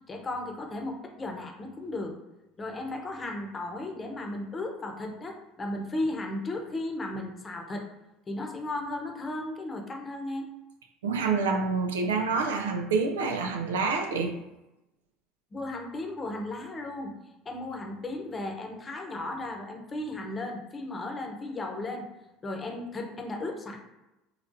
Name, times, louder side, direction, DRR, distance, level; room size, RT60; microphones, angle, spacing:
voice 1, 0.1-2.2 2.6-7.9 8.3-10.5 15.5-17.1 17.4-22.1 22.4-23.8, left 2 dB, 30° left, 2 dB, 0.8 m, -35 dB
voice 2, 11.0-14.3, right 4 dB, 85° right, 5 dB, 0.4 m, -27 dB
3.8 x 2.9 x 2.6 m, 0.96 s
hypercardioid pair, 70°, 0 cm